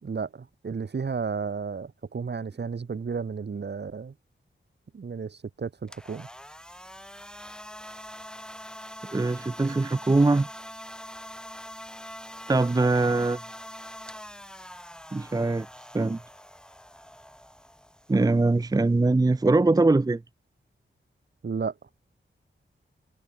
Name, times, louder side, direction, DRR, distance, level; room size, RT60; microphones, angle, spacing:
voice 1, 0.0-4.1 4.9-6.3 21.4-21.7, right 5 dB, 60° right, 2.7 m, -33 dB
sound 1, 5.8-19.8, equal, 5° left, 5.6 m, -44 dB
voice 2, 9.1-10.5 12.5-13.4 15.1-15.7 15.9-16.2 18.1-20.2, right 2 dB, 20° right, 0.6 m, -22 dB
wide cardioid pair, 130°, 20 cm